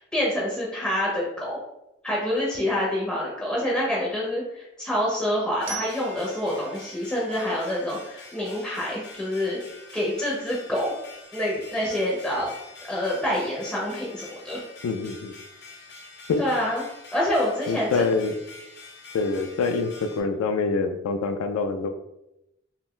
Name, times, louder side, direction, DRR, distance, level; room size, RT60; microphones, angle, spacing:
voice 1, 0.1-1.6 2.0-9.6 9.9-10.9 11.3-12.5 12.9-14.6 16.4-16.8 17.1-18.0, left 1 dB, 5° left, -5 dB, 0.4 m, -27 dB
sound 1, 5.6-20.2, left 3 dB, 50° left, 0.6 m, -46 dB
Glockenspiel, 5.7-8.5, right 8 dB, 60° right, 0.5 m, -42 dB
voice 2, 14.8-15.3 16.3-16.4 17.7-18.3 19.1-21.9, left 4 dB, 85° left, 9 dB, 0.3 m, -25 dB
2.5 x 2.2 x 3.5 m, 0.88 s
head